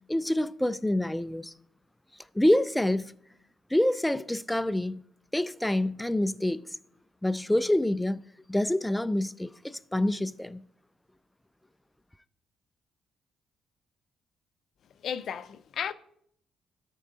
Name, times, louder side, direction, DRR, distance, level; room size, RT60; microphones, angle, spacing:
voice 1, 0.1-1.5 2.4-3.1 3.7-5.0 5.3-6.6 7.2-8.2 8.5-10.7, left 1 dB, 5° left, 0.3 m, -26 dB
voice 2, 15.0-15.9, left 8 dB, 65° left, 0.5 m, -34 dB
13.5 x 4.6 x 3.9 m
cardioid pair, 90°, 0 cm